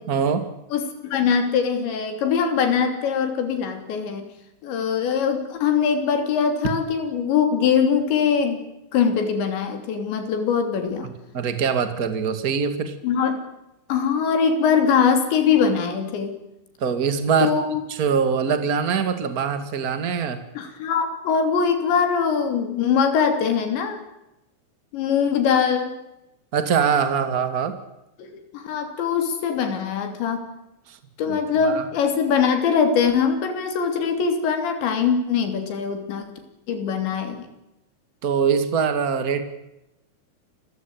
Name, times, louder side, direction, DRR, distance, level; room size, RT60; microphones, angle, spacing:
voice 1, 0.1-0.5 11.3-12.9 16.8-17.6 17.9-20.4 26.5-27.8 30.9-31.0 31.3-31.4 31.6-31.8 38.2-39.4, right 6 dB, 35° right, 9 dB, 1.5 m, -23 dB
voice 2, 0.7-4.3 4.6-8.6 8.9-11.1 13.0-13.4 13.9-16.4 17.4-17.8 20.6-24.0 24.9-25.9 28.2-30.5 31.2-36.4 36.7-37.5, left 6 dB, 70° left, 7 dB, 5.3 m, -22 dB
28.0 x 15.5 x 9.3 m, 0.92 s
omnidirectional pair, 5.3 m